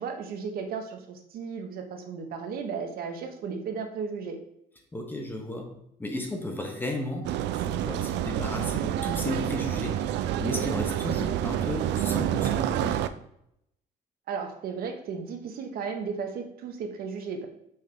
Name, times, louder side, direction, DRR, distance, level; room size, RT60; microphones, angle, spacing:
voice 1, 0.0-4.4 14.3-17.5, right 5 dB, 60° right, 5 dB, 0.9 m, -35 dB
voice 2, 4.9-5.7 6.0-10.1 10.4-13.0, left 1 dB, 10° left, 3 dB, 0.8 m, -34 dB
Train Station, 7.2-13.1, right 11 dB, 90° right, 0.4 m, -28 dB
5.6 x 5.4 x 3.3 m, 0.76 s
cardioid pair, 160°, 18 cm